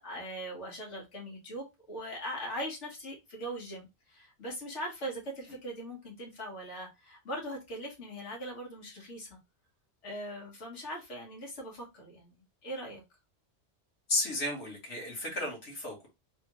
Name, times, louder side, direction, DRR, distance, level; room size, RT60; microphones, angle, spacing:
voice 1, 0.0-9.4 10.0-13.0, equal, 80° left, 1.8 m, -40 dB
voice 2, 14.1-16.1, left 2 dB, 65° left, 1.7 m, -33 dB
3.5 x 2.4 x 3.0 m
omnidirectional pair, 1.2 m